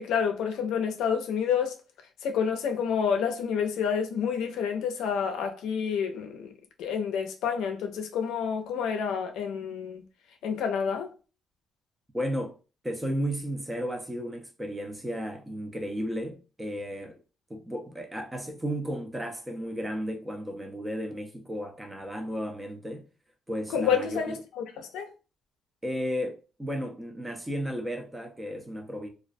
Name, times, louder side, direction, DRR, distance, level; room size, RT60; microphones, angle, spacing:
voice 1, 0.0-1.7 2.2-6.5 6.8-10.0 10.4-11.1 23.7-24.6 24.9-25.1, left 7 dB, 85° left, 0.4 m, -28 dB
voice 2, 12.1-12.6 12.8-17.2 17.5-23.0 23.5-24.4 25.8-29.1, equal, 15° right, 0.5 m, -34 dB
2.3 x 2.1 x 2.5 m
cardioid pair, 90°, 0 cm